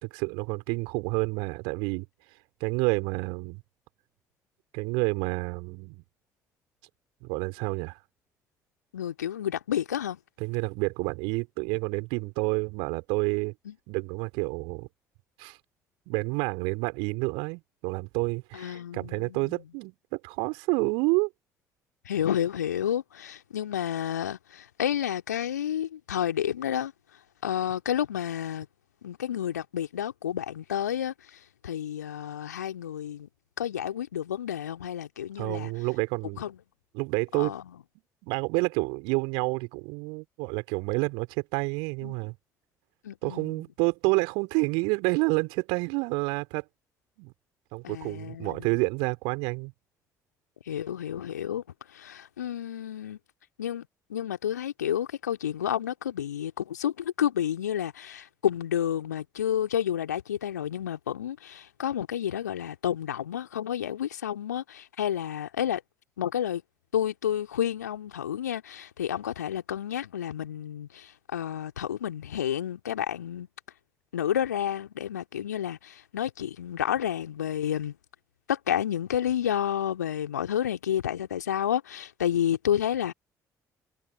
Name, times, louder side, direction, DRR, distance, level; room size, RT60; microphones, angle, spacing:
voice 1, 0.0-2.1 2.6-3.6 4.7-6.0 7.2-8.0 10.4-13.5 13.9-14.9 15.4-15.6 16.1-21.3 35.4-36.5 36.9-37.5 38.2-42.3 43.2-46.7 47.2-47.3 47.7-49.7, right 31 dB, 65° right, 4.1 m, -29 dB
voice 2, 8.9-10.2 13.7-13.8 18.5-19.6 22.1-26.9 27.4-28.7 29.0-31.1 31.6-33.3 33.6-35.7 36.4-36.6 37.3-37.6 42.0-42.1 43.0-43.6 47.8-48.8 50.7-51.6 51.9-53.2 53.6-65.8 66.2-66.6 66.9-73.5 74.1-77.9 78.5-83.1, left 10 dB, 80° left, 2.6 m, -30 dB
figure-of-eight pair, 50°, 9 cm